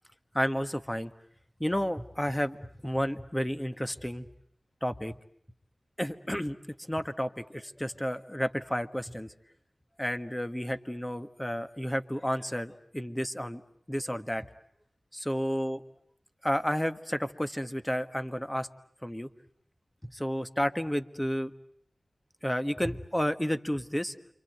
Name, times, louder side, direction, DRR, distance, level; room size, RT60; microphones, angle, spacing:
voice 1, 0.3-1.1 1.6-4.3 4.8-5.2 6.0-6.6 6.9-9.3 10.0-13.6 13.9-14.5 15.1-15.8 16.4-18.7 19.0-19.3 20.1-21.5 22.4-24.1, equal, 10° left, 9 dB, 1.4 m, -31 dB
29.0 x 25.0 x 8.0 m, 0.68 s
wide cardioid pair, 70°, 0 cm